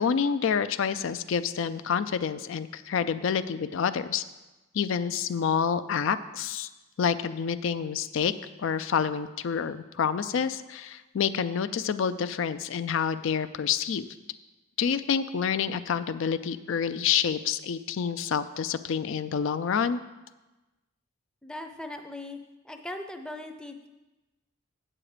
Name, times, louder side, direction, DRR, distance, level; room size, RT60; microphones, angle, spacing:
voice 1, 0.0-4.2 4.7-6.7 7.0-8.3 8.6-14.1 14.8-20.0, left 7 dB, 60° left, 12 dB, 0.4 m, -28 dB
voice 2, 21.4-22.4 22.6-23.9, left 1 dB, 5° left, 6 dB, 0.5 m, -39 dB
8.7 x 7.8 x 4.9 m, 1.1 s
head